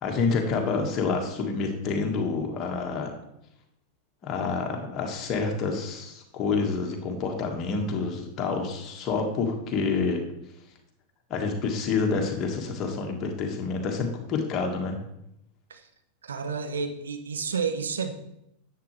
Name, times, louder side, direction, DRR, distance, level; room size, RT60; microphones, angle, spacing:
voice 1, 0.0-3.1 4.2-10.3 11.3-15.0, left 4 dB, 35° left, 2 dB, 1.8 m, -28 dB
voice 2, 16.2-18.1, right 5 dB, 70° right, 7 dB, 1.0 m, -30 dB
10.0 x 8.1 x 3.3 m, 0.80 s
figure-of-eight pair, 90°, 0 cm